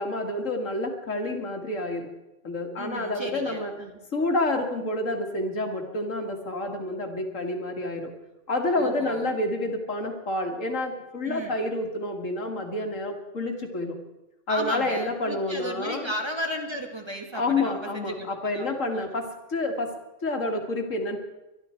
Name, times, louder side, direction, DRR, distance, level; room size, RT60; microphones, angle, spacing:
voice 1, 0.0-2.1 2.4-3.7 4.1-8.1 8.5-14.0 14.5-16.1 17.3-20.0 20.2-21.2, left 2 dB, 85° left, 4 dB, 2.4 m, -29 dB
voice 2, 2.8-4.0 8.7-9.3 11.2-11.6 14.5-19.2, equal, 20° right, 2 dB, 2.0 m, -35 dB
24.0 x 12.0 x 4.5 m, 0.99 s
omnidirectional pair, 1.3 m